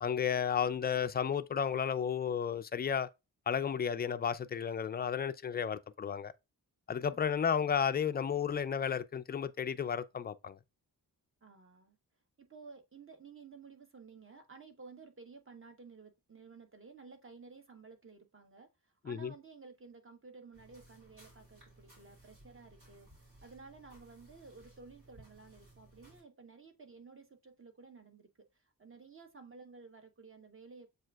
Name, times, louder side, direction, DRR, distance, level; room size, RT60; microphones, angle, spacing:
voice 1, 0.0-3.1 3.5-6.3 6.9-10.6 19.1-19.3, left 7 dB, 25° left, 0.3 m, -33 dB
voice 2, 11.4-12.0 12.4-23.1 23.4-30.9, right 4 dB, 30° right, 1.0 m, -54 dB
sound 1, 20.5-26.2, right 1 dB, 50° right, 2.6 m, -60 dB
7.4 x 2.5 x 2.3 m
cardioid pair, 60°, 40 cm